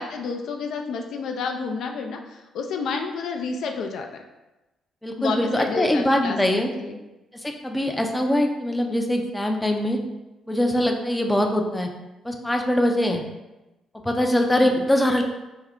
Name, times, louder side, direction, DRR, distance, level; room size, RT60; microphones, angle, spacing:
voice 1, 0.0-4.2 5.2-7.0 14.5-14.8, left 4 dB, 75° left, 3 dB, 0.4 m, -30 dB
voice 2, 5.0-6.7 7.4-10.0 10.5-11.9 12.2-13.2 14.0-15.2, left 1 dB, 10° left, 3 dB, 0.4 m, -22 dB
3.5 x 2.2 x 3.5 m, 1.0 s
cardioid pair, 90°, 0 cm